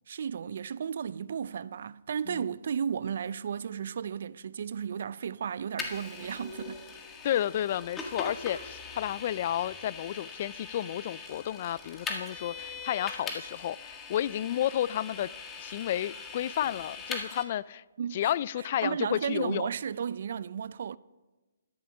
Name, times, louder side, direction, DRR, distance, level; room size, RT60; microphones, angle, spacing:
voice 1, 0.1-6.8 18.0-18.3 18.8-21.0, right 7 dB, 60° right, 0.4 m, -34 dB
Vehicle, 5.8-17.4, left 4 dB, 15° left, 1.6 m, -41 dB
voice 2, 7.2-15.3 15.6-17.8 18.1-19.7, left 11 dB, 45° left, 0.3 m, -31 dB
12.5 x 11.0 x 6.1 m
hypercardioid pair, 150°, 0 cm